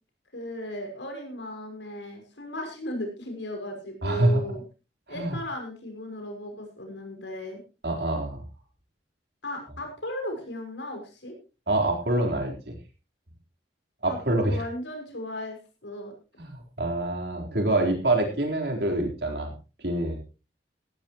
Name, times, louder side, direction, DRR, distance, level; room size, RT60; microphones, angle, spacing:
voice 1, 0.3-4.6 5.1-7.6 9.4-11.3 14.1-15.6 15.8-16.1, equal, 85° left, 3 dB, 6.1 m, -36 dB
voice 2, 4.0-4.4 5.1-5.4 7.8-8.4 11.7-12.8 14.0-14.6 16.4-19.5 19.8-20.2, right 1 dB, 65° right, 2 dB, 4.0 m, -26 dB
17.0 x 14.5 x 3.0 m, 0.32 s
head